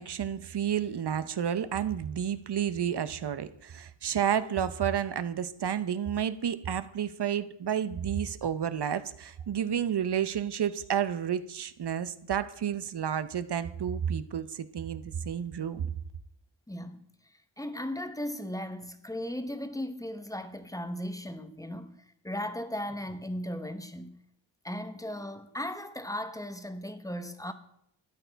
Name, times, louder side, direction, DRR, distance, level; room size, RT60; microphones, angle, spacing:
voice 1, 0.0-15.9, right 9 dB, 55° right, 0.7 m, -31 dB
voice 2, 16.7-17.0 17.6-24.2 24.6-27.5, left 1 dB, 5° left, 0.9 m, -37 dB
13.0 x 9.4 x 4.6 m
wide cardioid pair, 105°, 47 cm